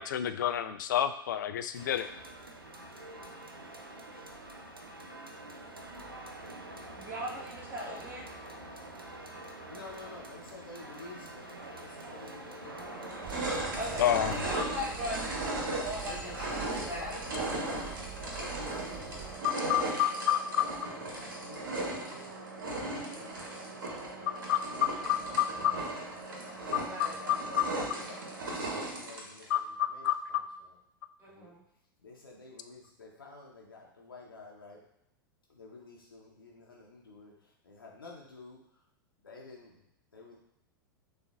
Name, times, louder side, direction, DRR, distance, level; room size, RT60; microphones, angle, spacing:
voice 1, 0.0-2.1 14.0-14.4 19.4-20.6 24.5-25.7 27.0-27.7 29.5-30.2, left 11 dB, 60° left, 10 dB, 0.4 m, -29 dB
sound 1, 1.7-14.6, right 2 dB, 85° right, 0.6 m, -46 dB
voice 2, 6.9-8.3 13.8-17.1 26.8-27.2 31.2-31.6, equal, 20° right, -3 dB, 1.2 m, -39 dB
voice 3, 9.7-13.1 13.4-13.9 14.5-15.0 16.0-20.7 21.0-26.1 26.3-28.2 28.7-30.7 31.3-31.5 32.0-34.8 35.5-38.6 39.2-39.8 40.1-40.4, left 3 dB, 80° left, -2 dB, 0.7 m, -51 dB
sound 2, 12.0-12.1 12.7-29.5, right 2 dB, 65° right, 1.1 m, -37 dB
sound 3, 13.2-19.4, right 8 dB, 35° right, 0.5 m, -45 dB
6.4 x 2.5 x 2.4 m, 0.79 s
figure-of-eight pair, 90°, 12 cm